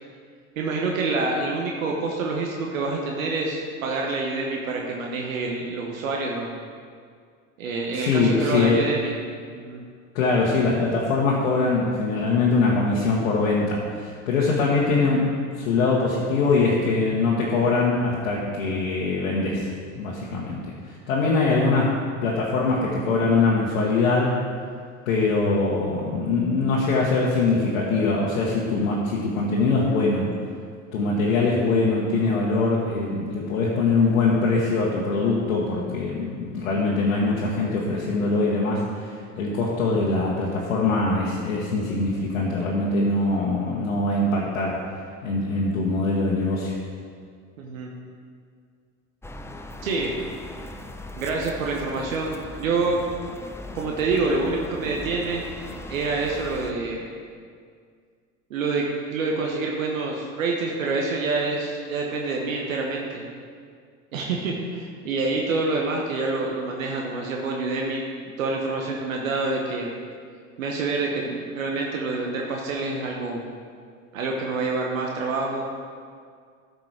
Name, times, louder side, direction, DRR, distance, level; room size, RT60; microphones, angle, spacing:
voice 1, 0.6-6.5 7.6-9.1 9.5-9.8 47.6-47.9 49.8-50.2 51.2-53.0 53.7-55.5 55.9-57.1 58.5-63.2 64.1-69.9 70.6-73.4 74.1-75.6, right 3 dB, 80° right, -1 dB, 1.1 m, -27 dB
voice 2, 7.9-8.8 10.1-15.3 15.6-19.7 19.9-21.9 22.2-24.3 25.1-30.3 30.9-44.8 45.2-46.8, left 3 dB, 75° left, -5 dB, 1.4 m, -23 dB
sound 1, 49.2-56.7, left 1 dB, 5° left, 0.6 m, -39 dB
13.0 x 5.2 x 4.8 m, 2.1 s
hypercardioid pair, 70°, 40 cm